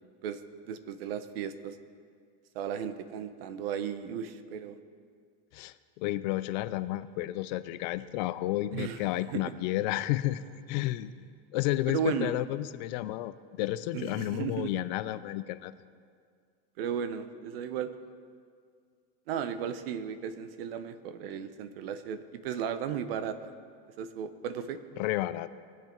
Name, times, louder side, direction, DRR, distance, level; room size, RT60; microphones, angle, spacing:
voice 1, 0.7-1.8 2.5-4.8 8.7-9.0 9.3-9.5 11.9-12.4 13.9-14.7 16.8-17.9 19.3-23.5 24.0-24.8, right 8 dB, 75° right, 11 dB, 1.0 m, -35 dB
voice 2, 5.5-10.4 10.7-11.2 11.5-15.7 25.0-25.5, left 15 dB, 50° left, 14 dB, 0.5 m, -31 dB
21.0 x 7.7 x 4.5 m, 2.1 s
supercardioid pair, 165°, 30 cm